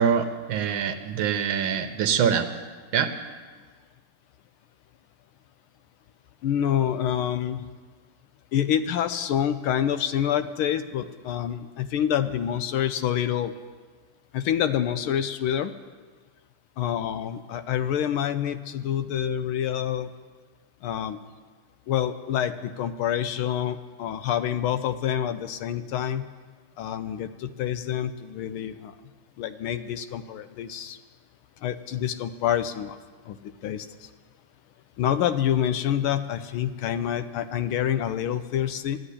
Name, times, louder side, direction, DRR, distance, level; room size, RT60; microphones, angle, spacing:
voice 1, 0.0-2.5 2.9-3.1, right 7 dB, 70° right, 8 dB, 1.6 m, -24 dB
voice 2, 6.4-7.6 8.5-13.5 14.3-15.7 16.8-20.1 20.8-21.2 21.9-26.3 26.8-28.9 29.4-31.0 31.6-33.0 33.3-33.4 33.6-33.9 35.0-39.0, left 10 dB, 80° left, 11 dB, 1.5 m, -27 dB
12.5 x 7.9 x 9.9 m, 1.5 s
omnidirectional pair, 2.4 m